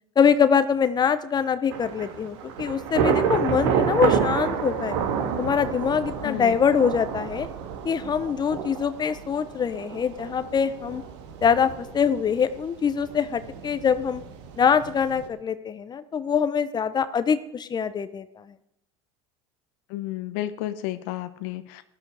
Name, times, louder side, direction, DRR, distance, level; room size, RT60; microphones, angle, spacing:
voice 1, 0.2-5.0 5.4-7.5 7.8-11.0 11.4-14.2 14.6-18.4, left 7 dB, 30° left, 13 dB, 0.8 m, -24 dB
Thunder / Rain, 1.7-15.3, right 7 dB, 70° right, 2.0 m, -29 dB
voice 2, 6.2-6.6 19.9-21.8, left 14 dB, 65° left, 12 dB, 0.9 m, -32 dB
13.5 x 12.5 x 4.9 m, 0.81 s
hypercardioid pair, 95°, 15 cm